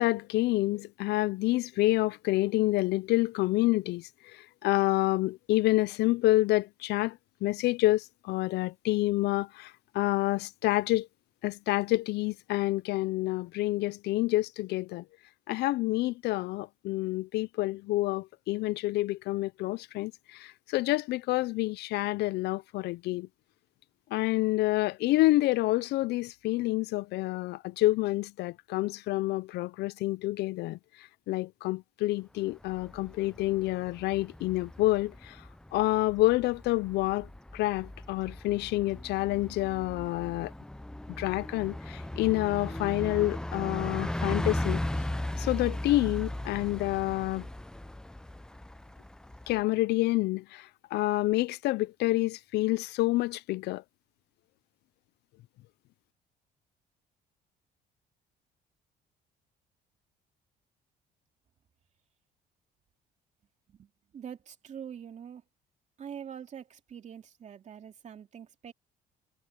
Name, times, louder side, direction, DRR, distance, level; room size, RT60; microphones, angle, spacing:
voice 1, 0.0-4.1 4.6-11.1 11.4-15.0 15.5-23.3 24.1-30.8 31.3-35.4 35.7-37.3 37.5-40.5 41.2-44.8 45.4-47.5 49.5-53.8, left 18 dB, 80° left, 0.5 m, -28 dB
Bus, 32.5-49.6, left 1 dB, 5° left, 0.5 m, -37 dB
voice 2, 63.7-65.4 66.0-68.7, right 8 dB, 45° right, 2.5 m, -44 dB
cardioid pair, 110°, 17 cm